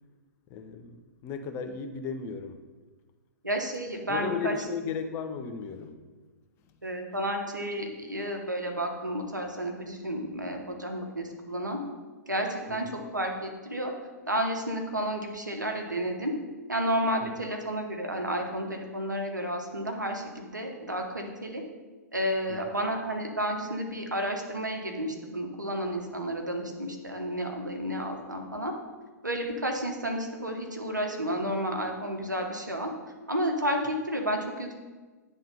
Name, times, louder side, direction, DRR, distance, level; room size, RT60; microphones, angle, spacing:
voice 1, 0.5-2.6 4.1-6.0 12.7-13.0 17.2-17.3 22.5-22.6, left 5 dB, 25° left, 6 dB, 0.6 m, -35 dB
voice 2, 3.4-4.6 6.8-11.8 12.3-13.9 14.3-16.3 16.7-21.6 22.1-28.7 29.2-32.9 33.3-34.7, equal, 85° right, 3 dB, 1.1 m, -31 dB
9.1 x 3.7 x 5.4 m, 1.3 s
figure-of-eight pair, 110°, 10 cm